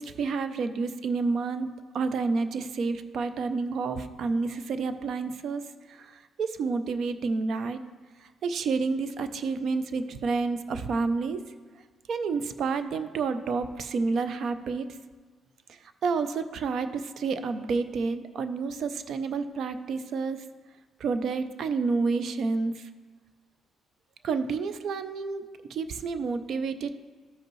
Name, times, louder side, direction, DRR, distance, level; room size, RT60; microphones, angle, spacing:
voice 1, 0.0-5.6 5.9-7.8 8.2-11.4 12.1-14.9 15.7-20.4 21.0-22.9 24.2-27.0, right 4 dB, 65° right, 10 dB, 0.5 m, -29 dB
13.5 x 5.3 x 3.1 m, 1.4 s
cardioid pair, 90°, 0 cm